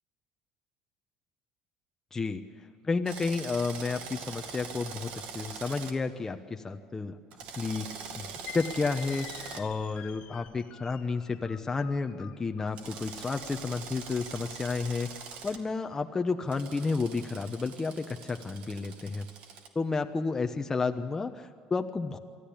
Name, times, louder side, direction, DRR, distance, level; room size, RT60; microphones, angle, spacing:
voice 1, 2.1-2.4 2.8-7.2 7.6-7.9 8.2-8.3 8.5-15.1 15.4-19.3 19.7-22.2, left 4 dB, 20° left, 5 dB, 1.1 m, -31 dB
Drill, 3.1-5.9 7.3-9.6 12.8-15.6 16.5-19.7, right 6 dB, 65° right, 2.1 m, -43 dB
sound 1, 8.5-15.7, left 11 dB, 70° left, 1.9 m, -48 dB
24.0 x 14.0 x 8.6 m, 2.3 s
supercardioid pair, 100°, 2 cm